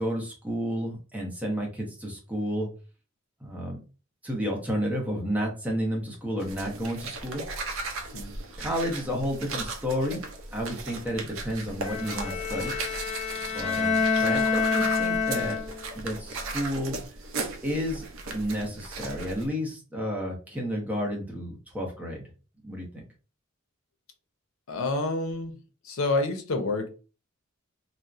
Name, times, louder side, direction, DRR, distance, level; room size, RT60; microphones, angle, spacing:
voice 1, 0.0-2.7 3.4-3.8 4.2-7.5 8.6-10.2 10.5-12.7 13.5-15.6 15.9-17.0 17.6-22.3 22.6-23.0, equal, 5° right, -2 dB, 0.7 m, -31 dB
sound 1, 6.4-19.5, right 3 dB, 75° right, 0.5 m, -37 dB
Bowed string instrument, 11.8-16.0, left 5 dB, 30° left, 0.7 m, -27 dB
voice 2, 24.7-25.6 25.8-26.9, left 2 dB, 80° left, 6 dB, 0.6 m, -28 dB
2.7 x 2.1 x 2.4 m, 0.34 s
head